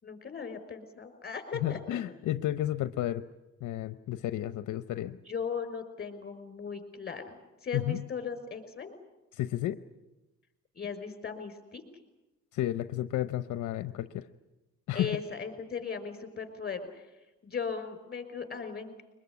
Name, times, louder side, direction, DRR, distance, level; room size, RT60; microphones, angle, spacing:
voice 1, 0.0-2.0 5.3-8.9 10.8-11.8 14.9-17.1 17.4-19.0, left 6 dB, 35° left, 9 dB, 5.3 m, -38 dB
voice 2, 1.6-3.2 3.6-5.2 7.7-8.1 9.3-9.8 12.5-14.3 14.9-15.2, left 13 dB, 80° left, 12 dB, 0.8 m, -32 dB
23.0 x 21.0 x 9.6 m, 1.0 s
cardioid pair, 90°, 30 cm